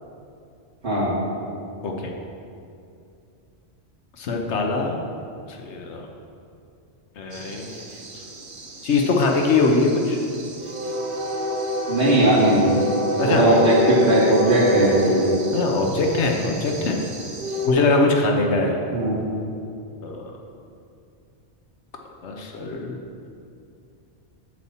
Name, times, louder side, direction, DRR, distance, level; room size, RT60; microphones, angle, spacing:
voice 1, 4.2-5.0 5.5-6.1 7.2-7.7 8.8-10.2 13.2-13.5 15.5-17.0 17.6-18.9 20.0-20.3 22.2-23.1, left 3 dB, 90° left, 2 dB, 1.2 m, -22 dB
sound 1, 7.3-17.7, left 1 dB, 55° right, 1.1 m, -29 dB
voice 2, 11.9-12.7 13.2-15.3 18.9-19.2, right 1 dB, 80° right, -13 dB, 2.9 m, -18 dB
11.0 x 4.3 x 7.1 m, 2.5 s
omnidirectional pair, 1.1 m